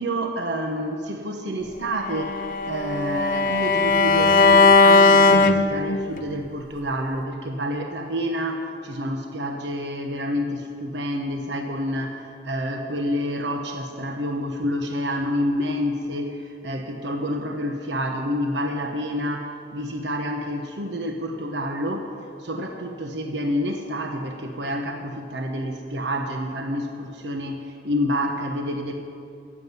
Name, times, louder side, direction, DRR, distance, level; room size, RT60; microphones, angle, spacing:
voice 1, 0.0-22.1 22.4-28.9, equal, 80° right, 4 dB, 1.1 m, -28 dB
Bowed string instrument, 2.0-6.2, left 3 dB, 50° left, 0.7 m, -17 dB
15.0 x 7.6 x 9.7 m, 2.4 s
head